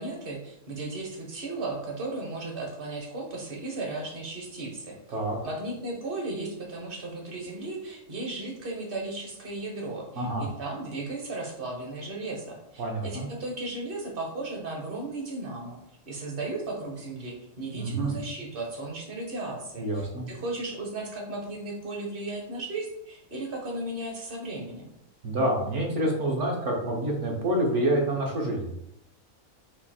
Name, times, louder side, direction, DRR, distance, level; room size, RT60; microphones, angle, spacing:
voice 1, 0.0-5.0 5.4-15.8 16.1-24.8, right 2 dB, 45° right, 0 dB, 1.1 m, -35 dB
voice 2, 10.2-10.5 12.8-13.3 17.7-18.1 19.8-20.3 25.2-28.6, right 1 dB, 60° right, 0 dB, 1.3 m, -27 dB
4.4 x 2.7 x 4.2 m, 0.82 s
omnidirectional pair, 1.5 m